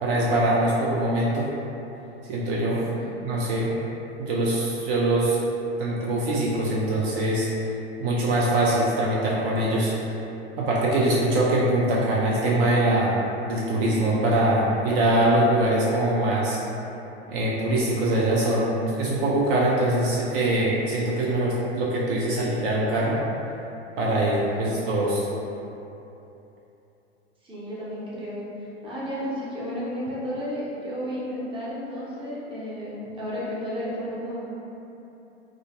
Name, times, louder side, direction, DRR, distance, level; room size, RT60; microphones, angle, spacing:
voice 1, 0.0-1.5 2.3-2.8 3.2-3.7 4.2-5.4 5.8-7.5 8.0-9.9 10.6-16.6 17.3-23.2 24.0-25.3, right 1 dB, 55° right, -5 dB, 0.5 m, -23 dB
voice 2, 2.7-3.1 24.5-24.7 27.4-34.5, equal, 15° right, -8 dB, 0.7 m, -33 dB
2.5 x 2.4 x 2.4 m, 2.9 s
hypercardioid pair, 95°, 35 cm